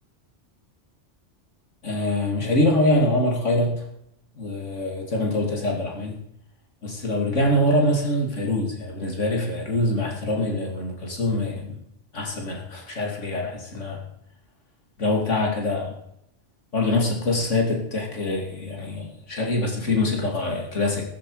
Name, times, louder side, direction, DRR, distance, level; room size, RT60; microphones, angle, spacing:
voice 1, 1.8-3.7 4.4-6.1 6.8-11.7 12.1-14.0 15.0-15.9 16.7-21.0, left 1 dB, 90° left, 1 dB, 3.2 m, -24 dB
14.5 x 13.0 x 5.0 m, 0.76 s
omnidirectional pair, 1.2 m